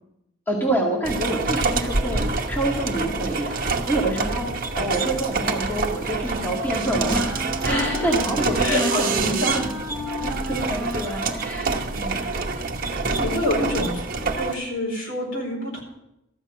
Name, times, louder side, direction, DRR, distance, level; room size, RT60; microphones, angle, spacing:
voice 1, 0.5-4.5 4.7-9.7 10.2-12.2, right 1 dB, 10° left, -3 dB, 1.9 m, -27 dB
sound 1, 1.0-14.5, right 3 dB, 40° right, 1.0 m, -27 dB
Wind instrument woodwind instrument, 6.1-12.0, left 1 dB, 15° right, 1.8 m, -33 dB
voice 2, 7.7-8.1 8.6-9.6 13.1-14.0 14.4-15.8, left 1 dB, 55° left, -1 dB, 4.4 m, -26 dB
14.0 x 6.5 x 8.8 m, 0.86 s
head